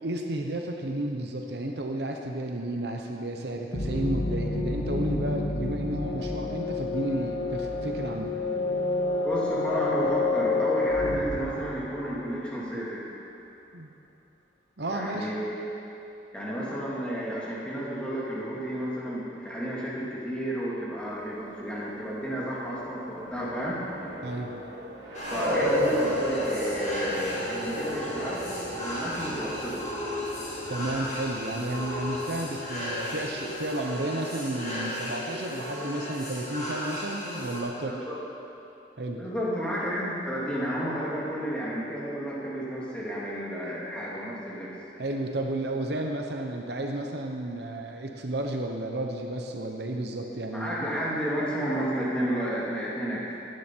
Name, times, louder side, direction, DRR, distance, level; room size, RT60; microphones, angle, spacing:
voice 1, 0.0-8.3 13.7-13.9 14.8-15.3 24.2-24.5 30.7-37.9 39.0-39.2 45.0-50.9, right 1 dB, 60° right, 2 dB, 1.0 m, -32 dB
sound 1, 3.7-12.4, left 3 dB, 90° left, 1.8 m, -29 dB
voice 2, 9.2-13.0 14.9-15.6 16.3-23.8 25.3-28.5 28.7-29.9 37.9-38.1 39.2-44.7 50.5-53.3, equal, 5° left, -7 dB, 2.4 m, -32 dB
sound 2, 22.7-34.1, equal, 85° right, 3.2 m, -33 dB
sound 3, 25.1-37.6, left 1 dB, 40° left, 2.9 m, -35 dB
16.5 x 11.0 x 4.6 m, 2.8 s
head